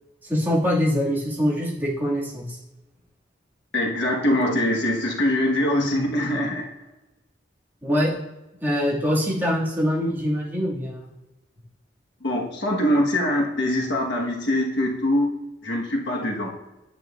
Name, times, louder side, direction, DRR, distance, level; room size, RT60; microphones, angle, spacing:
voice 1, 0.2-2.6 7.8-8.1 8.6-11.0, equal, 10° right, -6 dB, 2.1 m, -23 dB
voice 2, 3.7-6.7 12.2-15.3 15.6-16.5, left 1 dB, 70° left, -1 dB, 1.4 m, -23 dB
9.1 x 8.6 x 2.5 m, 1.0 s
head